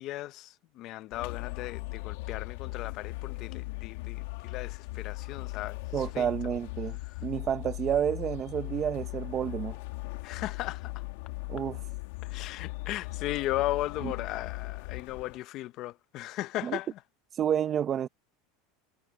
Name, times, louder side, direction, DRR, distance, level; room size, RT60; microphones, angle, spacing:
voice 1, 0.0-6.3 10.2-10.9 12.2-16.9, left 16 dB, 45° left, 0.9 m, -36 dB
sound 1, 1.1-15.4, left 24 dB, 75° left, 3.0 m, -38 dB
voice 2, 5.9-7.0 7.2-9.8 11.5-11.8 14.0-14.1 16.6-16.8 17.4-18.1, right 9 dB, 30° right, 1.1 m, -30 dB
supercardioid pair, 145°, 0 cm